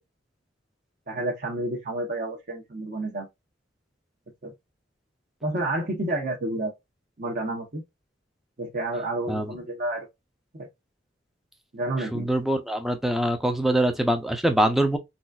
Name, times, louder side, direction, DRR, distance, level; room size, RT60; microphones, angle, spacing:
voice 1, 1.1-3.3 4.4-4.5 5.4-6.7 7.2-7.8 8.6-10.1 10.5-10.7 11.7-12.3, right 2 dB, 50° right, 1.0 m, -30 dB
voice 2, 12.1-15.0, right 1 dB, ahead, 0.6 m, -24 dB
4.0 x 2.4 x 2.3 m
head